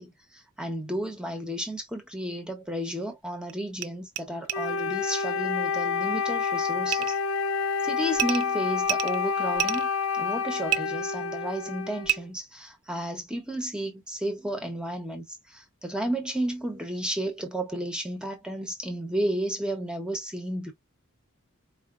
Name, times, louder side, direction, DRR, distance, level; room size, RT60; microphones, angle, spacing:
voice 1, 0.0-7.2 7.8-9.9 10.1-20.7, right 1 dB, 5° right, 1.1 m, -32 dB
sound 1, 2.7-2.8 3.5-3.6 3.8-3.9 4.2-4.3 4.5-4.6 6.9-7.2 8.1-8.4 8.8-9.9 10.7-10.8 12.0-12.2, right 14 dB, 85° right, 0.5 m, -28 dB
Wind instrument woodwind instrument, 4.5-12.2, left 5 dB, 65° left, 0.6 m, -28 dB
4.8 x 2.6 x 2.5 m
head